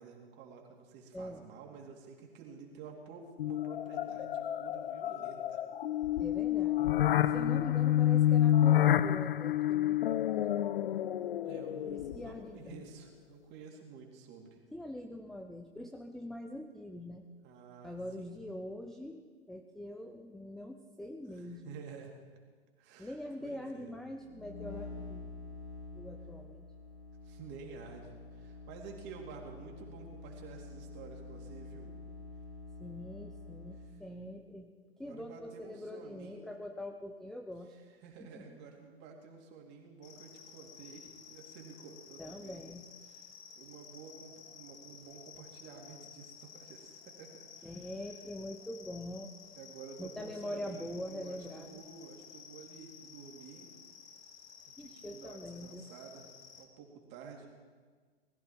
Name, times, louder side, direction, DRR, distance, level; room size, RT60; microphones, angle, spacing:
voice 1, 0.0-5.6 7.4-7.5 11.4-14.6 17.4-18.3 21.3-22.1 22.8-23.1 23.4-23.9 27.2-31.9 35.0-36.5 37.7-42.6 43.0-43.3 43.6-47.9 49.6-53.7 54.7-56.3 56.5-57.5, right 5 dB, 35° right, 1 dB, 3.0 m, -51 dB
voice 2, 1.1-1.5 6.2-6.9 7.2-11.1 11.8-12.8 14.7-17.2 17.8-21.8 23.0-25.6 25.9-26.7 32.8-34.7 35.0-37.7 38.2-38.6 42.2-42.9 47.6-49.3 50.0-51.8 54.8-55.9, left 1 dB, ahead, 4 dB, 0.5 m, -44 dB
sound 1, 3.4-12.5, left 12 dB, 60° left, 0.5 m, -29 dB
sound 2, 24.2-34.0, left 3 dB, 90° left, 3.0 m, -48 dB
sound 3, 40.0-56.6, left 7 dB, 35° left, 1.8 m, -54 dB
20.5 x 14.5 x 4.6 m, 1.5 s
figure-of-eight pair, 100°, 31 cm